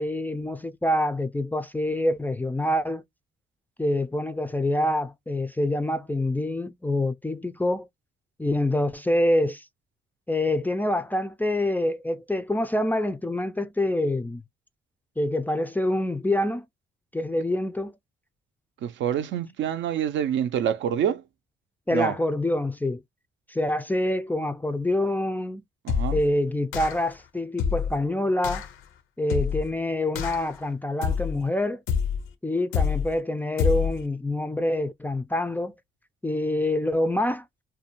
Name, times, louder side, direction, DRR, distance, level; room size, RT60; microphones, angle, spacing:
voice 1, 0.0-3.0 3.8-7.9 8.4-9.6 10.3-14.4 15.2-16.6 17.1-17.9 21.9-23.0 23.5-25.6 26.1-28.7 29.2-31.8 32.4-35.7 36.2-37.4, left 1 dB, 10° left, 0.3 m, -26 dB
voice 2, 18.8-21.2 21.9-22.2 25.8-26.2, right 9 dB, 70° right, 0.5 m, -26 dB
sound 1, 25.9-26.3 26.7-27.1 27.6-28.0 28.4-28.7 29.3-29.7 30.2-30.6 31.0-31.4 31.9-32.3 32.7-33.2 33.6-34.0, left 7 dB, 85° left, 0.6 m, -26 dB
2.5 x 2.1 x 2.8 m
cardioid pair, 90°, 20 cm